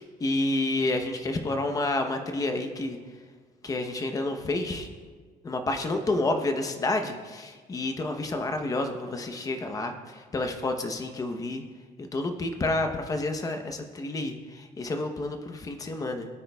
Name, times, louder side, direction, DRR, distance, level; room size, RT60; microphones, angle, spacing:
voice 1, 0.0-3.0 3.6-4.9 5.4-11.6 12.0-16.3, left 2 dB, 20° left, 6 dB, 0.8 m, -29 dB
20.0 x 9.2 x 2.3 m, 1.5 s
cardioid pair, 170°, 17 cm